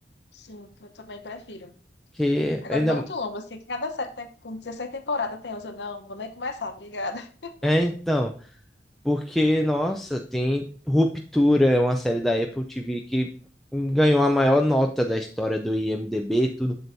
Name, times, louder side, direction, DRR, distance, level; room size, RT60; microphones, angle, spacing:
voice 1, 0.3-1.7 2.6-7.7, left 3 dB, 75° left, 6 dB, 0.9 m, -34 dB
voice 2, 2.1-3.0 7.6-8.3 9.0-13.3 13.7-16.8, left 1 dB, ahead, 2 dB, 0.5 m, -23 dB
7.7 x 6.9 x 2.6 m, 0.43 s
head